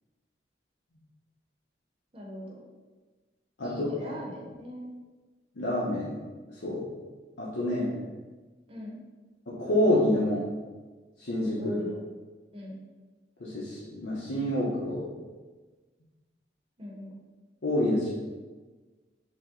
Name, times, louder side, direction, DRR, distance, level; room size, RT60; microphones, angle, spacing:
voice 1, 2.1-2.6 3.6-4.9 8.7-9.0 11.6-12.0 12.5-12.8 16.8-17.1, equal, 30° right, -1 dB, 0.7 m, -41 dB
voice 2, 3.6-3.9 5.6-6.1 6.6-6.8 7.4-7.9 9.5-10.4 11.2-11.8 13.4-15.1 17.6-18.1, left 1 dB, 90° left, -8 dB, 0.8 m, -27 dB
5.1 x 2.1 x 3.6 m, 1.3 s
head